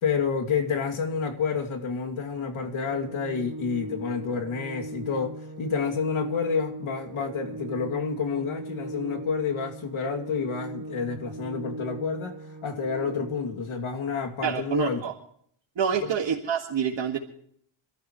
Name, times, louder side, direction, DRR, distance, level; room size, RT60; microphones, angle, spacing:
voice 1, 0.0-12.4 12.6-15.0 16.0-16.1, left 5 dB, 75° left, 2.7 m, -29 dB
Organ, 2.8-13.8, right 1 dB, 45° right, 1.9 m, -39 dB
voice 2, 14.4-15.1 15.8-17.2, right 7 dB, 60° right, 1.9 m, -27 dB
28.0 x 13.0 x 3.1 m
wide cardioid pair, 130°, 49 cm